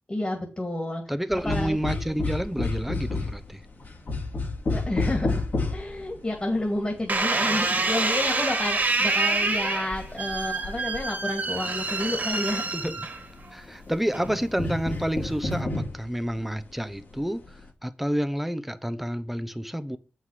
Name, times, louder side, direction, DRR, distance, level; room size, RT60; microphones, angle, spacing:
voice 1, 0.1-1.0 1.4-2.0 4.7-5.4 5.7-12.6, left 1 dB, 30° left, 2.2 m, -30 dB
voice 2, 1.1-3.6 12.7-13.0 13.5-17.4 17.8-20.0, equal, 5° right, 0.7 m, -29 dB
sound 1, 1.3-7.2 7.5-12.5 12.8-17.7, left 3 dB, 60° left, 2.7 m, -31 dB
sound 2, 7.1-13.5 14.1-14.6, right 3 dB, 45° right, 2.0 m, -27 dB
8.0 x 5.8 x 4.9 m
wide cardioid pair, 90°, 4 cm